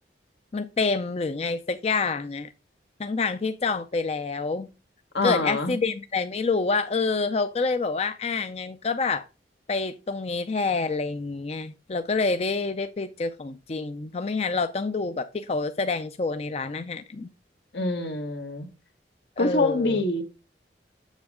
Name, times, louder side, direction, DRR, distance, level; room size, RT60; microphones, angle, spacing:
voice 1, 0.5-2.5 3.0-4.7 5.2-9.2 9.7-17.3 19.4-20.0, left 4 dB, 35° left, 0.4 m, -27 dB
voice 2, 5.1-5.7 17.7-18.7 19.4-20.2, left 2 dB, 80° left, 1.5 m, -25 dB
7.3 x 7.2 x 3.6 m
head